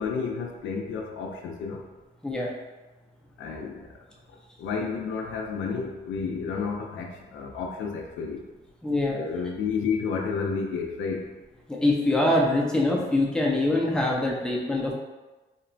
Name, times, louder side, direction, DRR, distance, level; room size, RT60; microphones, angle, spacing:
voice 1, 0.0-1.9 3.4-3.9 4.3-8.4 9.1-11.3, left 5 dB, 75° left, 2 dB, 0.4 m, -31 dB
voice 2, 8.8-9.2 11.7-14.9, left 1 dB, 5° left, -2 dB, 0.5 m, -24 dB
2.9 x 2.1 x 2.5 m, 1.2 s
cardioid pair, 90°, 20 cm